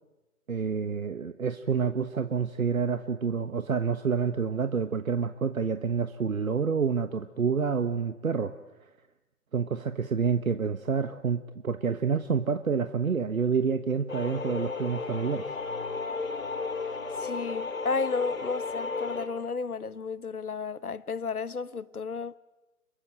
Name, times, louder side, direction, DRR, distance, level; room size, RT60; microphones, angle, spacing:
voice 1, 0.5-8.5 9.5-15.5, right 6 dB, 65° right, 1.3 m, -28 dB
sound 1, 14.1-19.3, left 4 dB, 60° left, 3.5 m, -34 dB
voice 2, 16.8-22.4, left 4 dB, 75° left, 1.2 m, -33 dB
28.5 x 22.5 x 8.9 m
figure-of-eight pair, 140°, 44 cm